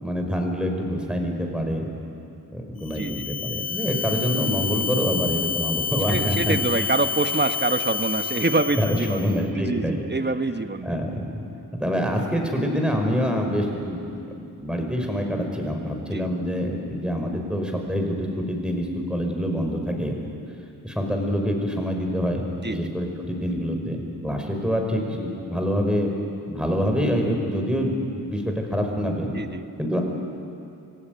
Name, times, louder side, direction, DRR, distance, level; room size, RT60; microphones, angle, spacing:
voice 1, 0.0-1.9 2.5-6.8 8.8-10.0 10.8-11.4 11.7-20.1 20.8-26.1 26.5-29.3 29.8-30.0, equal, ahead, 2 dB, 5.2 m, -26 dB
sound 1, 2.8-9.4, left 6 dB, 60° left, 0.8 m, -29 dB
voice 2, 2.9-3.3 6.1-9.2 9.5-11.0 16.1-16.3 22.6-22.9 29.3-29.6, right 2 dB, 25° right, 8 dB, 1.5 m, -26 dB
25.5 x 16.5 x 9.5 m, 2.6 s
cardioid pair, 45°, 41 cm